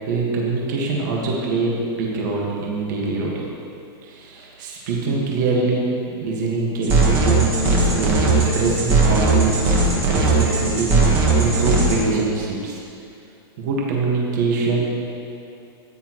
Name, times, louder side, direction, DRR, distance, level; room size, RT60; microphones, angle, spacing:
voice 1, 0.1-3.5 4.0-5.9 6.2-9.6 10.0-11.0 11.3-12.8 13.6-14.8, right 3 dB, 50° right, -3 dB, 1.6 m, -24 dB
sound 1, 6.8-12.0, right 3 dB, 20° right, 1.4 m, -18 dB
14.0 x 9.6 x 3.1 m, 2.7 s
supercardioid pair, 180°, 13 cm